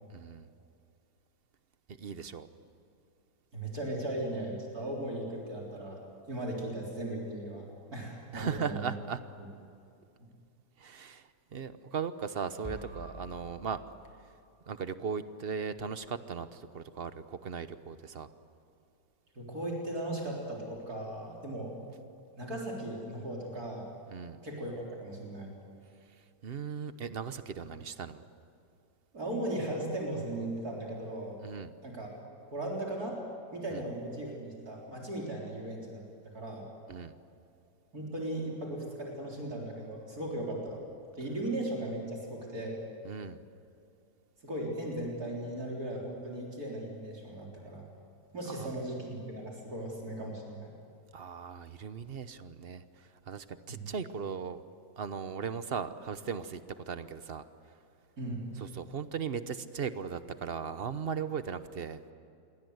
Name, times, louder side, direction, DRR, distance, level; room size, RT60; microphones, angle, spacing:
voice 1, 0.1-0.5 1.9-2.5 8.3-9.2 10.8-13.8 14.7-18.3 24.1-24.4 26.4-28.2 31.4-31.7 33.7-33.8 36.9-37.2 43.0-43.4 48.5-48.7 51.1-54.6 55.0-57.4 58.6-62.0, right 6 dB, 45° right, 12 dB, 1.0 m, -38 dB
voice 2, 3.5-6.0 6.3-8.9 19.4-21.8 22.4-23.8 24.4-25.5 29.1-31.4 31.8-32.1 32.5-33.2 33.5-36.6 37.9-40.8 41.2-42.8 44.4-47.9 48.3-50.7 53.7-53.9 58.2-58.5, right 1 dB, 60° right, -2 dB, 4.2 m, -37 dB
sound 1, 12.6-14.7, equal, 15° left, 4.7 m, -48 dB
28.0 x 23.0 x 8.0 m, 2.5 s
omnidirectional pair, 1.8 m